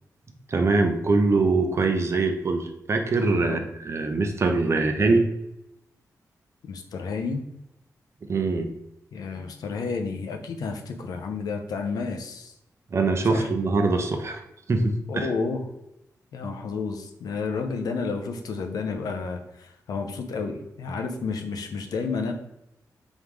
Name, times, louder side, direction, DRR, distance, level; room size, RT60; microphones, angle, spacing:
voice 1, 0.5-5.2 8.3-8.7 12.9-14.4 14.7-15.3, right 3 dB, 45° right, 4 dB, 0.6 m, -23 dB
voice 2, 6.6-7.4 9.1-12.5 13.3-13.5 15.1-15.7 16.3-22.3, left 4 dB, 90° left, 4 dB, 0.6 m, -31 dB
3.6 x 3.6 x 3.1 m, 0.84 s
wide cardioid pair, 110°, 6 cm